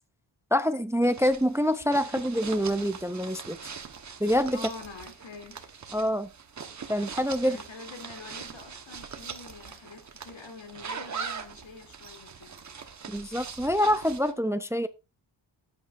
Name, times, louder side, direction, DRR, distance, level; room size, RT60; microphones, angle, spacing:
voice 1, 0.5-3.6 4.2-4.6 5.9-6.3 6.9-7.6 13.1-14.9, equal, 5° right, 0.5 m, -26 dB
sound 1, 1.0-14.3, right 6 dB, 40° right, 1.2 m, -42 dB
voice 2, 4.5-5.6 5.9-6.1 7.4-12.5, left 4 dB, 85° left, 3.0 m, -46 dB
17.0 x 8.8 x 2.5 m
wide cardioid pair, 170°, 44 cm